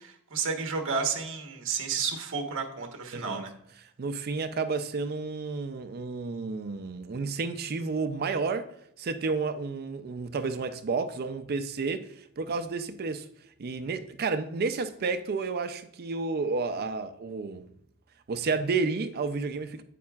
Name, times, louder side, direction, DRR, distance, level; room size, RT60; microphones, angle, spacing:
voice 1, 0.0-3.5, right 5 dB, 60° right, 1.2 m, -31 dB
voice 2, 3.1-3.4 4.0-8.7 9.0-13.3 13.6-17.7 18.3-19.8, right 4 dB, 45° right, 0.4 m, -31 dB
8.5 x 8.4 x 2.4 m
head